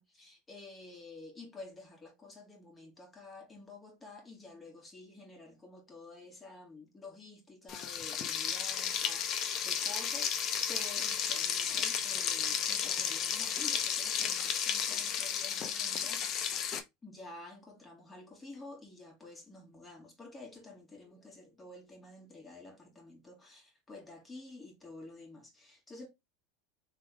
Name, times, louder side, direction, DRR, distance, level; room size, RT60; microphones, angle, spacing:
voice 1, 0.0-16.3 17.0-26.1, left 2 dB, 15° left, 1.7 m, -50 dB
Frying (food), 7.7-16.8, left 8 dB, 40° left, 0.7 m, -33 dB
3.4 x 3.3 x 3.2 m
supercardioid pair, 115°, 0 cm